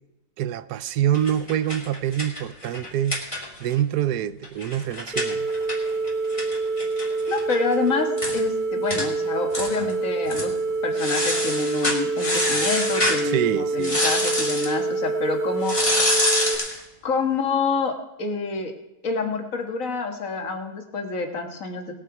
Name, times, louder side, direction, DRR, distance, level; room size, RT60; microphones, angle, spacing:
voice 1, 0.4-3.2 3.6-5.5 13.2-14.5, right 10 dB, 85° right, 1.2 m, -26 dB
sound 1, 1.1-3.8 4.1-4.2 4.4-7.6 7.9-8.0 8.2-8.4 8.9-9.1 9.5-9.9 10.3-10.5 11.0-13.2 13.8-14.7 15.6-16.8, left 1 dB, 20° left, 2.6 m, -26 dB
sound 2, 5.1-16.6, right 3 dB, ahead, 2.2 m, -26 dB
voice 2, 7.3-10.5 10.8-15.8 17.0-18.7 19.0-21.9, left 4 dB, 55° left, 1.8 m, -27 dB
20.0 x 7.5 x 4.8 m
omnidirectional pair, 1.7 m